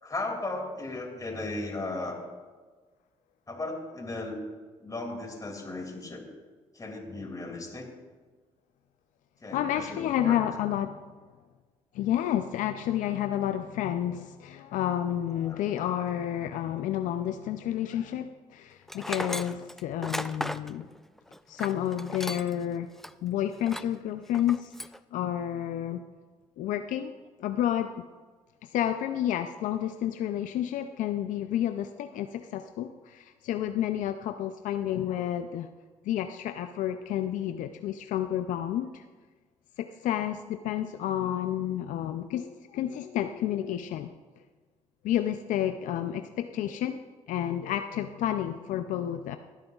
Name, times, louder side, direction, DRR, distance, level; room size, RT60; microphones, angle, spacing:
voice 1, 0.0-2.2 3.5-4.4 4.8-6.3 6.7-7.9 9.4-10.4 15.4-15.6, left 2 dB, 25° left, 2 dB, 2.4 m, -36 dB
voice 2, 9.5-11.0 11.9-20.9 21.5-22.9 23.2-24.7 25.1-26.0 26.6-27.1 27.4-28.0 28.6-35.7 36.0-39.0 39.8-44.1 45.0-47.0 47.3-49.4, left 11 dB, 75° left, 8 dB, 0.4 m, -30 dB
Tools, 18.9-22.6 23.0-23.1 23.6-24.0 24.3-25.0, left 1 dB, 5° left, 0.3 m, -36 dB
16.0 x 9.0 x 2.4 m, 1.4 s
cardioid pair, 75°, 13 cm